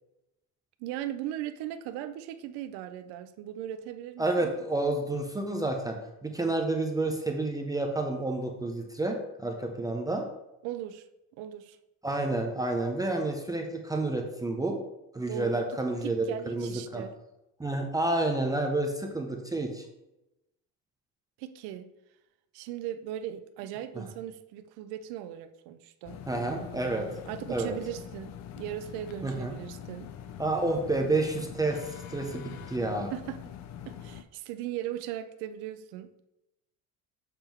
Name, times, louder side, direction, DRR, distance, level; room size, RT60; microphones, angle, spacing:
voice 1, 0.8-4.5 10.6-11.1 11.4-11.8 15.3-15.7 16.0-17.1 21.4-21.9 22.5-26.7 27.2-30.1 33.1-33.4 33.8-36.1, right 12 dB, 90° right, 10 dB, 0.7 m, -38 dB
voice 2, 4.2-10.3 12.0-14.8 15.1-17.0 17.6-19.8 23.9-24.0 26.3-27.1 27.5-27.8 29.2-29.5 30.4-33.1, right 2 dB, 10° right, 2 dB, 0.6 m, -30 dB
sound 1, 26.0-34.2, left 9 dB, 50° left, 0.5 m, -43 dB
7.3 x 3.6 x 4.5 m, 0.91 s
cardioid pair, 140°, 37 cm